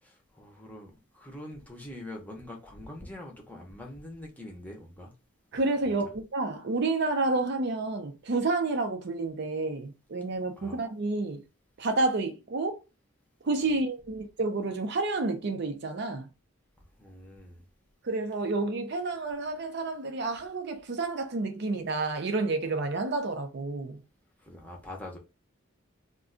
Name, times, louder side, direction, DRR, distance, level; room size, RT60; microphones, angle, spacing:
voice 1, 0.0-5.1 6.0-6.1 10.6-10.8 17.0-17.7 24.4-25.2, left 1 dB, 10° left, 0.7 m, -44 dB
voice 2, 5.5-11.4 11.8-12.8 13.4-16.3 18.0-24.0, right 3 dB, 55° right, 0.5 m, -30 dB
2.4 x 2.2 x 3.7 m
head